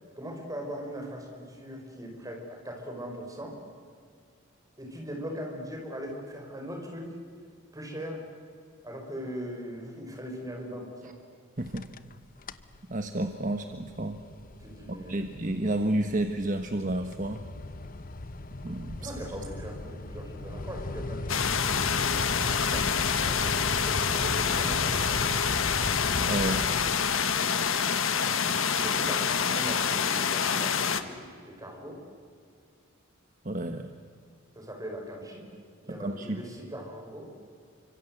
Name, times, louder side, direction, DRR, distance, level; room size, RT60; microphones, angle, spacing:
voice 1, 0.1-3.6 4.8-7.1 7.7-8.2 8.8-11.2 14.6-15.2 19.0-22.3 22.6-25.6 28.8-32.0 34.5-35.5 35.8-37.3, equal, 15° right, 1 dB, 6.0 m, -40 dB
sound 1, 11.6-12.1 12.4-12.8 13.2-27.5, left 2 dB, 40° left, 1.0 m, -37 dB
voice 2, 11.6-11.9 12.9-14.2 14.9-17.4 18.6-19.1 26.2-26.7 33.4-33.9 35.9-36.4, right 1 dB, 40° right, 7 dB, 1.3 m, -31 dB
sound 2, 21.3-31.0, left 7 dB, 65° left, 1.5 m, -27 dB
29.5 x 25.5 x 8.0 m, 2.2 s
head